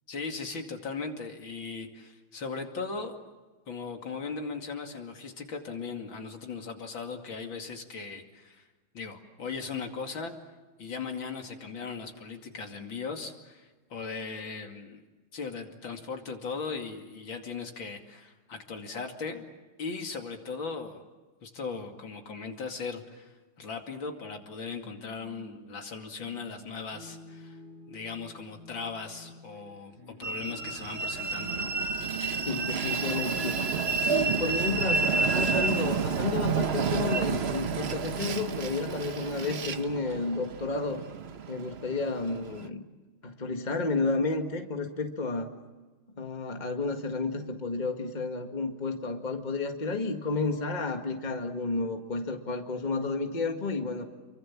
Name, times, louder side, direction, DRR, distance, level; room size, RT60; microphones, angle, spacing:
voice 1, 0.1-3.2 3.7-8.6 8.9-10.3 10.8-15.0 15.3-19.4 19.8-21.0 21.4-27.6 27.9-31.7, left 4 dB, 70° left, 3 dB, 3.2 m, -38 dB
sound 1, 25.2-35.1, left 1 dB, 80° right, 5.9 m, -52 dB
Train, 30.2-42.7, right 5 dB, 45° right, 0.9 m, -30 dB
voice 2, 32.4-33.6 34.1-41.0 41.5-42.8 43.2-45.5 46.2-54.0, left 3 dB, 25° left, 4 dB, 1.9 m, -31 dB
29.0 x 24.0 x 7.3 m, 1.3 s
omnidirectional pair, 2.2 m